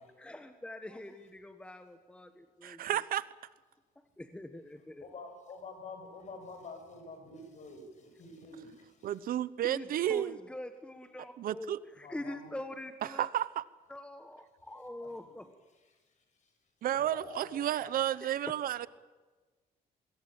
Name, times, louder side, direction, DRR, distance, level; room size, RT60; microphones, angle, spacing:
voice 1, 0.0-2.9 4.2-5.1 9.6-13.3 13.9-15.6 17.7-17.8 18.2-18.3, left 1 dB, 5° left, 8 dB, 1.4 m, -45 dB
voice 2, 2.6-3.2 9.0-10.4 11.4-11.8 13.1-13.6 16.8-18.9, right 11 dB, 70° right, 17 dB, 1.0 m, -32 dB
voice 3, 5.0-9.2 12.0-12.5 15.0-15.4 16.1-16.5 16.9-18.0, left 3 dB, 50° left, 6 dB, 7.4 m, -48 dB
25.5 x 22.0 x 8.8 m, 1.3 s
cardioid pair, 140°, 16 cm